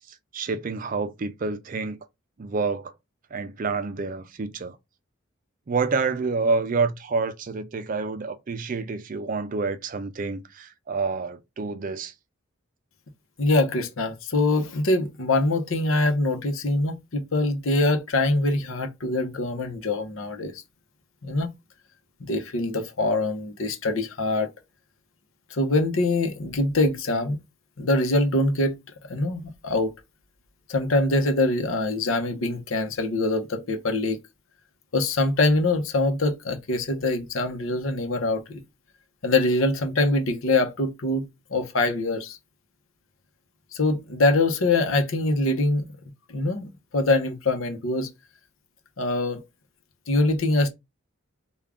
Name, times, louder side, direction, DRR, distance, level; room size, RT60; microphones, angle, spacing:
voice 1, 0.3-2.0 2.4-2.9 3.3-4.8 5.7-12.1, right 4 dB, 40° right, 0.4 m, -28 dB
voice 2, 13.4-20.6 21.2-21.5 22.2-24.5 25.5-27.4 27.8-28.7 29.1-29.9 30.7-34.2 34.9-38.6 39.2-41.2 41.5-42.4 43.7-45.9 46.3-48.1 49.0-49.4 50.1-50.7, left 2 dB, 80° left, 0.8 m, -24 dB
3.5 x 2.3 x 3.5 m
head